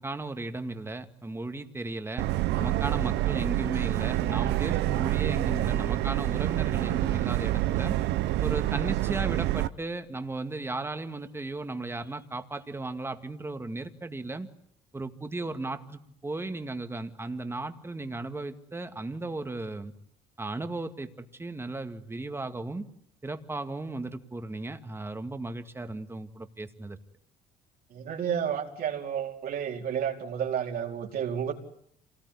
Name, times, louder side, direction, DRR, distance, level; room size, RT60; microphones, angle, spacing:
voice 1, 0.0-2.3 2.6-8.0 8.4-14.5 14.9-19.9 20.4-22.8 23.2-27.0, right 2 dB, 15° right, 7 dB, 2.1 m, -35 dB
Subway metro underground, 2.2-9.7, right 15 dB, 85° right, 1.0 m, -27 dB
voice 2, 27.9-31.5, right 8 dB, 60° right, 2 dB, 4.4 m, -31 dB
27.0 x 19.0 x 9.9 m, 0.71 s
cardioid pair, 110°, 17 cm